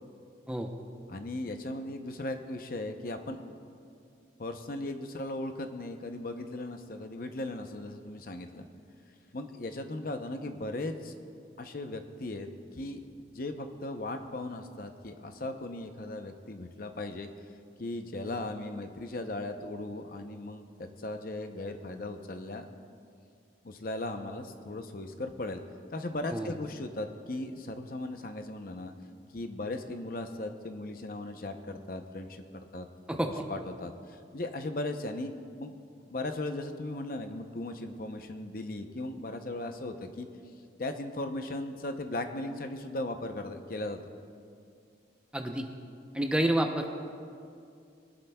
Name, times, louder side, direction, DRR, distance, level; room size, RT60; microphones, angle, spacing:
voice 1, 1.1-3.5 4.4-8.7 9.3-11.1 11.6-12.5 12.7-17.3 17.8-22.7 23.6-25.6 25.9-28.9 29.3-32.4 32.7-32.9 33.5-35.3 35.6-35.7 36.1-40.3 40.8-44.0, left 2 dB, 50° left, 6 dB, 0.7 m, -37 dB
voice 2, 45.3-45.7 46.1-46.9, right 1 dB, 5° right, 3 dB, 0.6 m, -28 dB
22.0 x 12.0 x 2.3 m, 2.4 s
head